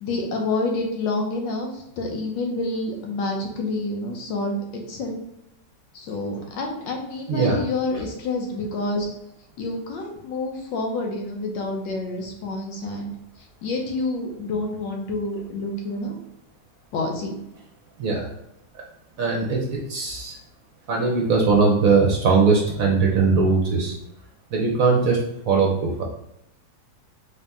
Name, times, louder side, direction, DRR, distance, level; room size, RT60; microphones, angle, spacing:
voice 1, 0.0-5.2 5.9-9.1 9.6-13.1 13.6-16.2 16.9-17.4, left 2 dB, 90° left, 1 dB, 1.6 m, -28 dB
voice 2, 7.3-7.6 7.9-8.0 18.0-18.3 19.2-19.6 19.9-20.4 20.9-24.0 24.5-25.2 25.5-26.0, right 4 dB, 60° right, -1 dB, 1.0 m, -20 dB
3.9 x 2.8 x 3.5 m, 0.81 s
omnidirectional pair, 1.9 m